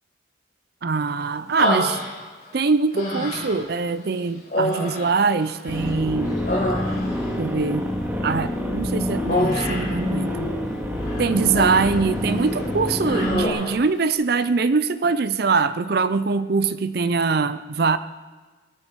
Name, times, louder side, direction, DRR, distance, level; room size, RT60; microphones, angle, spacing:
voice 1, 0.8-2.0 2.5-6.4 7.4-7.9 8.2-10.5 11.2-18.0, right 4 dB, 55° right, 13 dB, 0.5 m, -23 dB
Human voice, 1.6-2.5 2.9-3.7 4.5-5.9 6.2-7.3 9.3-10.0 11.0-12.0 12.4-12.6 13.0-13.8, left 1 dB, 50° left, 4.6 m, -27 dB
sound 1, 5.7-13.5, left 1 dB, 10° right, 2.0 m, -27 dB
21.0 x 13.5 x 4.7 m, 1.3 s
head